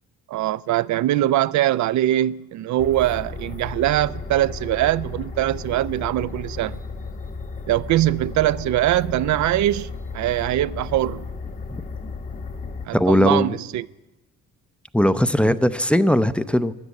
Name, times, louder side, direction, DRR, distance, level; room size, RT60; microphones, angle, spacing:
voice 1, 0.3-6.8 7.7-9.9 10.1-11.3 12.9-13.9, right 14 dB, 70° right, 0.4 m, -22 dB
sound 1, 2.8-12.9, left 4 dB, 25° left, 1.1 m, -34 dB
voice 2, 12.9-13.6 14.9-16.7, equal, 5° left, 0.6 m, -19 dB
13.0 x 12.5 x 8.2 m
cardioid pair, 90°, 30 cm